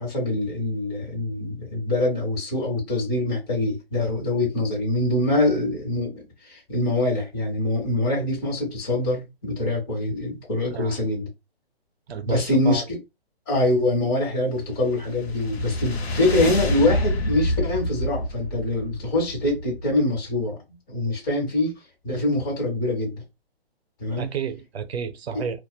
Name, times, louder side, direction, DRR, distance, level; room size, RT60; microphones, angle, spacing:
voice 1, 0.0-11.3 12.3-13.0 13.5-20.6 20.9-21.7 22.0-23.2 24.0-24.3 25.3-25.4, left 2 dB, 25° left, 1.3 m, -24 dB
voice 2, 10.6-11.0 12.1-12.8 24.2-25.6, right 6 dB, 80° right, 0.6 m, -31 dB
sound 1, 14.7-20.1, left 1 dB, 80° left, 0.8 m, -28 dB
2.4 x 2.2 x 2.2 m
hypercardioid pair, 155°, 31 cm